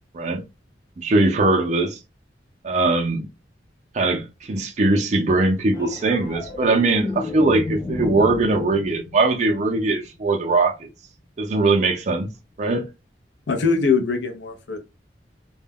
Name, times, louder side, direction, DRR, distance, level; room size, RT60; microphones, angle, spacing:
voice 1, 1.0-2.0 2.6-3.3 3.9-10.9 11.4-12.3 12.6-12.9, right 2 dB, 40° right, 0.4 m, -21 dB
sound 1, 5.7-10.2 12.6-12.8, left 2 dB, 25° left, 0.7 m, -33 dB
voice 2, 13.5-14.8, left 5 dB, 85° left, 0.5 m, -22 dB
2.1 x 2.1 x 3.3 m
head